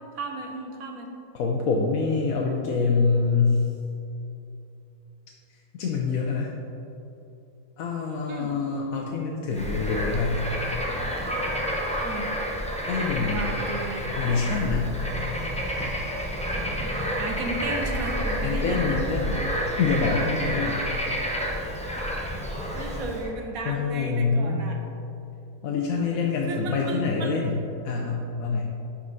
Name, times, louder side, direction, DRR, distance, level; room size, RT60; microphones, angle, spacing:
voice 1, 0.1-1.1 8.3-8.5 12.0-12.3 13.3-14.1 17.2-18.9 22.8-24.8 26.5-27.4, right 3 dB, 75° right, 2 dB, 1.4 m, -34 dB
voice 2, 1.3-3.6 5.8-6.5 7.8-10.4 12.9-13.6 14.2-14.9 18.4-19.4 19.8-20.8 23.6-24.7 25.6-28.7, left 4 dB, 75° left, -1 dB, 1.1 m, -25 dB
Bird / Frog, 9.5-23.3, equal, 5° left, 0.6 m, -29 dB
11.0 x 4.3 x 4.0 m, 2.7 s
omnidirectional pair, 1.5 m